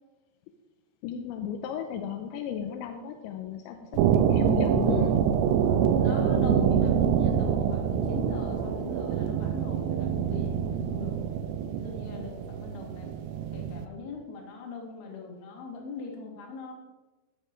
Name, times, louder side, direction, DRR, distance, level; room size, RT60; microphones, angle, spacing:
voice 1, 1.0-3.8 4.1-5.1 6.5-6.7, left 9 dB, 85° left, 5 dB, 3.0 m, -34 dB
sound 1, 3.9-13.9, right 8 dB, 85° right, 3.0 m, -26 dB
voice 2, 4.8-5.2 5.9-11.2 11.8-13.1 13.5-16.7, left 3 dB, 65° left, 1 dB, 3.7 m, -40 dB
14.5 x 6.5 x 5.2 m, 1.1 s
omnidirectional pair, 5.3 m